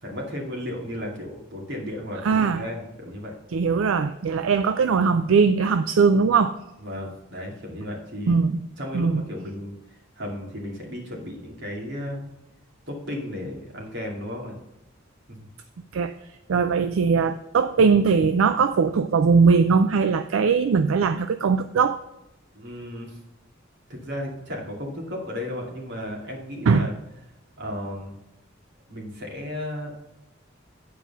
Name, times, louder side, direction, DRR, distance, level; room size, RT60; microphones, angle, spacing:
voice 1, 0.0-3.3 6.8-8.4 8.8-12.3 12.9-14.6 15.3-15.4 22.5-23.2 23.9-26.9 27.6-28.2 28.9-29.9, left 1 dB, 60° right, -1 dB, 2.4 m, -34 dB
voice 2, 2.2-2.6 3.5-6.6 8.3-8.6 8.9-9.2 15.9-16.1 16.5-22.0 26.7-26.9, right 5 dB, 80° right, 11 dB, 0.4 m, -20 dB
9.2 x 4.7 x 5.5 m, 0.91 s
head